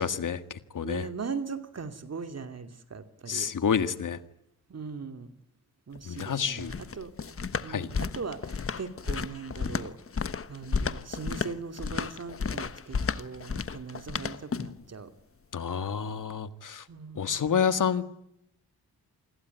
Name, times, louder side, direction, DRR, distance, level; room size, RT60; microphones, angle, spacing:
voice 1, 0.0-1.0 3.3-4.2 6.0-6.7 7.7-7.9 15.5-16.8 17.1-18.1, left 7 dB, 55° left, 11 dB, 1.7 m, -29 dB
voice 2, 0.8-3.5 4.7-5.3 5.9-7.1 7.6-10.0 10.5-15.1 16.9-17.5, right 5 dB, 40° right, 8 dB, 2.7 m, -39 dB
sound 1, 6.0-14.8, left 5 dB, 35° left, 1.2 m, -33 dB
28.5 x 21.0 x 9.4 m, 0.81 s
wide cardioid pair, 150°, 38 cm